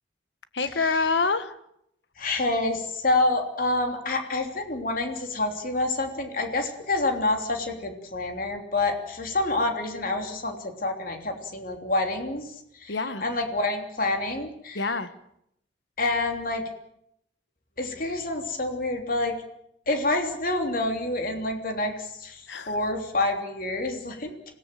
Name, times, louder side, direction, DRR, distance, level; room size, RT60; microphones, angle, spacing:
voice 1, 0.5-1.6 12.9-13.2 14.7-15.1 22.5-22.8, left 4 dB, 70° left, 11 dB, 1.5 m, -26 dB
voice 2, 2.2-12.9 13.2-14.8 16.0-16.6 17.8-19.4 19.9-24.3, left 2 dB, 50° left, 4 dB, 3.2 m, -27 dB
26.0 x 17.0 x 7.7 m, 0.77 s
head